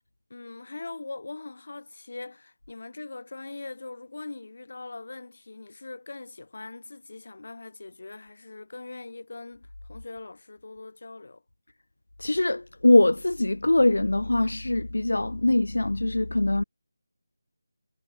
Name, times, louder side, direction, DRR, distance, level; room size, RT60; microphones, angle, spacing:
voice 1, 0.3-11.4, left 3 dB, 60° left, 2.7 m, -41 dB
voice 2, 12.2-16.6, left 2 dB, 90° left, 0.5 m, -22 dB
figure-of-eight pair, 170°, 0 cm